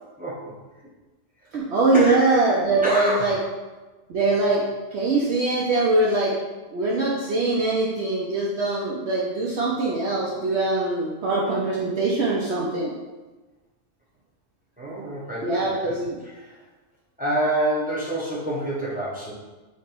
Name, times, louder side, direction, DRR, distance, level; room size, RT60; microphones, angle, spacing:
voice 1, 0.2-0.5 1.9-2.2 2.8-3.4 14.8-15.9 16.3-16.6 17.2-19.3, right 1 dB, 10° right, -7 dB, 0.8 m, -27 dB
voice 2, 1.5-3.3 4.1-4.6 4.9-6.3 6.7-12.9 15.4-16.2, right 2 dB, 65° right, -5 dB, 0.9 m, -22 dB
3.3 x 2.9 x 4.3 m, 1.2 s
omnidirectional pair, 1.3 m